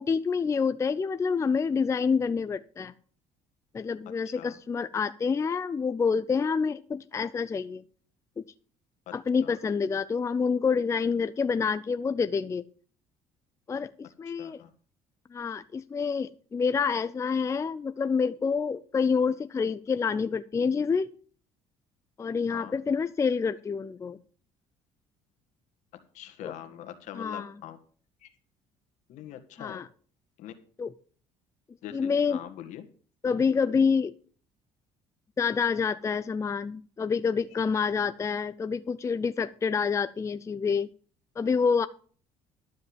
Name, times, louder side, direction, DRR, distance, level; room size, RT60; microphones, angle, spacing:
voice 1, 0.0-2.9 3.7-7.8 8.4-8.5 9.1-12.6 13.7-14.6 15.3-21.1 22.2-24.2 26.4-26.5 27.2-27.5 29.6-29.9 30.8-30.9 31.9-32.4 33.2-34.1 35.4-40.9 41.4-41.9, left 5 dB, 25° left, 13 dB, 0.5 m, -27 dB
voice 2, 14.4-14.7 22.5-22.8 26.1-27.8 28.2-28.3 29.1-29.8 30.4-30.5 31.8-32.8 37.7-37.8, left 11 dB, 70° left, 7 dB, 1.7 m, -43 dB
12.0 x 5.3 x 7.9 m, 0.44 s
cardioid pair, 100°, 13 cm